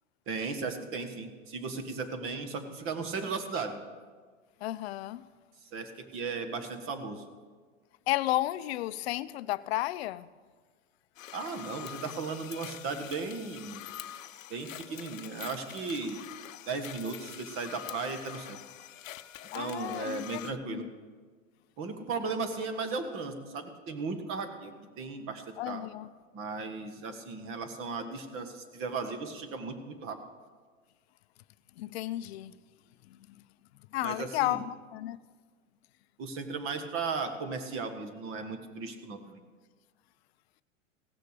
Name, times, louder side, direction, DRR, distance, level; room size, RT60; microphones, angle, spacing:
voice 1, 0.3-3.8 5.7-7.2 11.3-13.8 14.5-16.2 16.7-18.6 19.5-20.8 21.8-25.9 26.3-30.2 34.0-34.6 36.2-39.4, right 4 dB, 35° right, 7 dB, 1.5 m, -36 dB
voice 2, 4.6-5.2 8.1-10.3 19.5-20.4 20.7-20.9 25.6-26.1 31.8-32.5 33.9-35.2, left 16 dB, 55° left, 16 dB, 0.5 m, -32 dB
sound 1, 11.2-20.5, left 12 dB, 80° left, 0.7 m, -45 dB
16.5 x 6.6 x 6.7 m, 1.5 s
hypercardioid pair, 130°, 39 cm